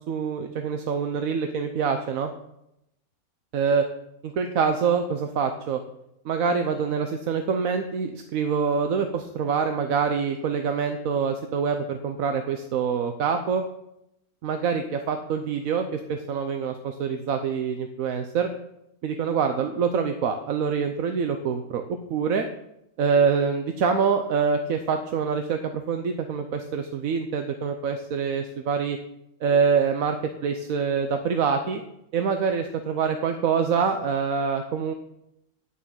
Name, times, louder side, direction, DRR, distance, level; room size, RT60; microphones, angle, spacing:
voice 1, 0.1-2.3 3.5-3.8 4.2-5.8 6.2-13.6 14.4-18.5 19.0-22.5 23.0-29.0 29.4-30.2 30.4-31.8 32.1-34.9, right 6 dB, 70° right, 6 dB, 1.2 m, -25 dB
9.0 x 7.1 x 8.7 m, 0.84 s
omnidirectional pair, 1.5 m